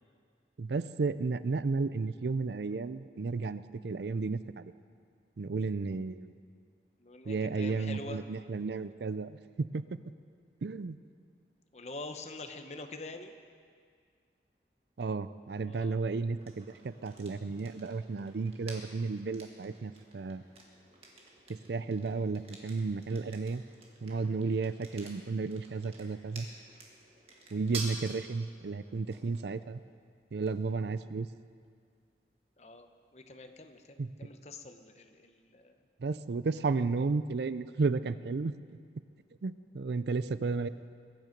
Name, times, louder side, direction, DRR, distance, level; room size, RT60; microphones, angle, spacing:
voice 1, 0.6-4.7 5.4-6.4 7.3-9.8 10.6-11.0 15.0-20.4 21.5-23.6 24.0-26.5 27.5-29.8 30.3-31.3 34.0-34.1 36.0-38.5 39.4-40.7, right 4 dB, 70° right, 14 dB, 0.5 m, -33 dB
voice 2, 7.0-8.2 11.7-13.4 15.7-16.0 32.6-35.8, left 2 dB, 40° left, 6 dB, 0.9 m, -45 dB
sound 1, 16.4-34.1, right 3 dB, 35° right, 1.8 m, -51 dB
22.0 x 9.4 x 5.2 m, 2.1 s
head